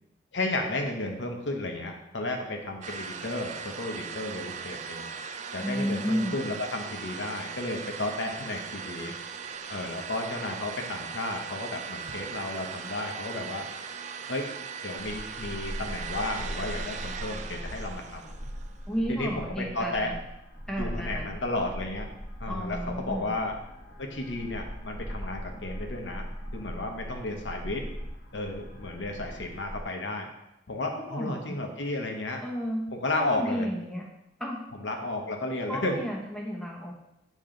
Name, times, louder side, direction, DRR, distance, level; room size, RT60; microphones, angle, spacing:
voice 1, 0.3-5.1 5.5-9.1 9.7-13.6 14.3-14.5 14.8-18.3 19.1-20.1 20.8-22.1 22.4-23.5 24.0-26.3 26.5-27.8 28.3-30.3 30.7-32.4 32.9-33.7 34.7-36.0, left 2 dB, 85° left, 2 dB, 0.9 m, -33 dB
sound 1, 2.8-18.8, right 6 dB, 40° right, 0.3 m, -39 dB
voice 2, 5.6-6.4 18.9-20.1 20.7-21.3 22.5-23.3 30.9-31.6 32.4-32.8 33.1-34.1 34.4-34.6 35.7-36.9, equal, 5° left, -1 dB, 0.9 m, -32 dB
sound 2, 15.0-29.8, equal, 50° left, 1.4 m, -40 dB
8.7 x 3.1 x 3.8 m, 0.87 s
head